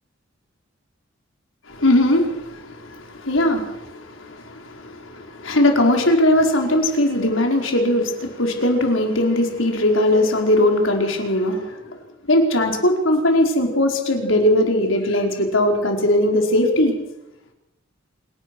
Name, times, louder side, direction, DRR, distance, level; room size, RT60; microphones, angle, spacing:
voice 1, 1.7-11.8 12.3-16.9, left 1 dB, 90° left, 2 dB, 4.9 m, -19 dB
27.0 x 18.0 x 6.4 m, 0.91 s
head